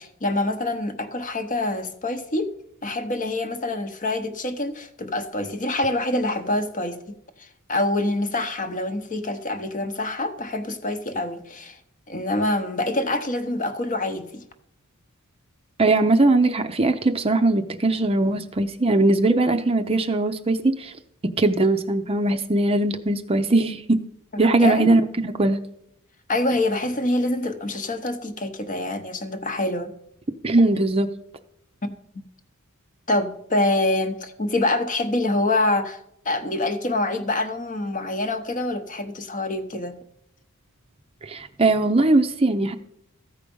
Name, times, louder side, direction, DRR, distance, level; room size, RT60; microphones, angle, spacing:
voice 1, 0.0-2.5 2.8-11.8 12.1-14.4 24.4-25.0 26.3-29.9 31.8-32.2 33.1-40.0, left 2 dB, 35° left, 0.9 m, -26 dB
voice 2, 15.8-20.9 21.4-24.0 24.4-25.6 30.4-31.1 41.2-42.8, right 2 dB, 25° right, 0.5 m, -20 dB
14.0 x 4.9 x 5.3 m
head